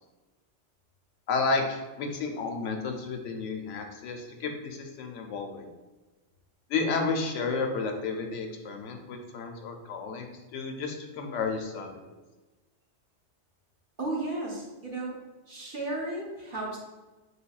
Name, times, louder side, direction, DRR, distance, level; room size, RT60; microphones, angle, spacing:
voice 1, 1.3-5.7 6.7-11.9, left 4 dB, 85° left, 4 dB, 1.0 m, -32 dB
voice 2, 14.0-15.2 15.5-16.8, right 2 dB, 45° right, -3 dB, 1.1 m, -34 dB
5.8 x 3.3 x 2.3 m, 1.2 s
omnidirectional pair, 1.3 m